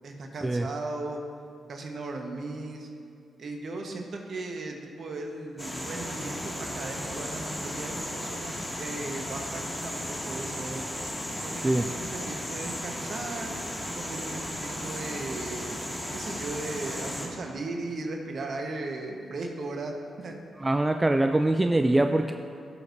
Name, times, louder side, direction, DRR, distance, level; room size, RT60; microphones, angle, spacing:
voice 1, 0.0-1.2 1.7-2.9 3.4-10.8 11.4-13.5 13.9-15.8 16.1-20.4, right 2 dB, 60° right, 2 dB, 1.3 m, -37 dB
sound 1, 5.6-17.3, equal, 10° left, 2.3 m, -35 dB
voice 2, 20.6-22.3, right 2 dB, 20° right, 6 dB, 0.4 m, -23 dB
17.0 x 6.4 x 2.7 m, 2.4 s
hypercardioid pair, 40°, 0 cm